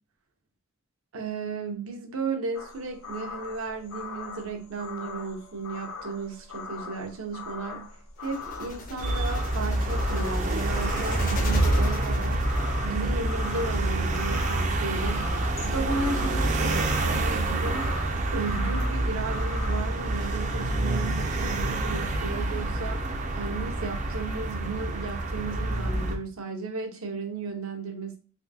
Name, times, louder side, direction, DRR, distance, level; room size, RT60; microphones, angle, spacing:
voice 1, 1.1-7.9 8.2-12.5 12.8-15.3 15.6-17.9 18.3-23.0 23.3-28.2, right 4 dB, 80° right, 0.7 m, -34 dB
sound 1, 2.5-19.9, left 5 dB, 80° left, 0.6 m, -41 dB
sound 2, 8.2-12.8, left 3 dB, 40° left, 0.5 m, -39 dB
sound 3, 9.0-26.2, right 2 dB, 35° right, 0.4 m, -27 dB
3.5 x 2.5 x 2.7 m
head